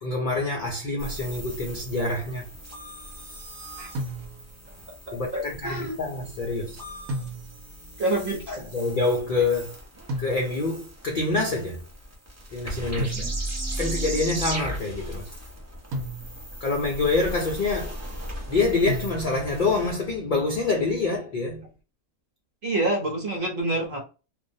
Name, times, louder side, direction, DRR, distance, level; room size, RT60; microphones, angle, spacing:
voice 1, 0.0-2.5 5.1-6.8 8.5-9.8 10.2-11.8 12.5-13.3 13.8-15.3 16.6-18.0 18.5-21.7, left 3 dB, 80° left, 0.4 m, -26 dB
sound 1, 1.0-19.9, right 1 dB, 25° right, 0.3 m, -37 dB
sound 2, 4.0-4.7 7.1-7.8 10.1-10.9 13.0-13.7 15.9-16.7 18.9-19.7, right 1 dB, 90° right, 1.1 m, -34 dB
voice 2, 5.1-6.0 8.0-8.6 22.6-24.0, right 2 dB, 45° right, 0.8 m, -27 dB
2.5 x 2.1 x 2.6 m
omnidirectional pair, 1.5 m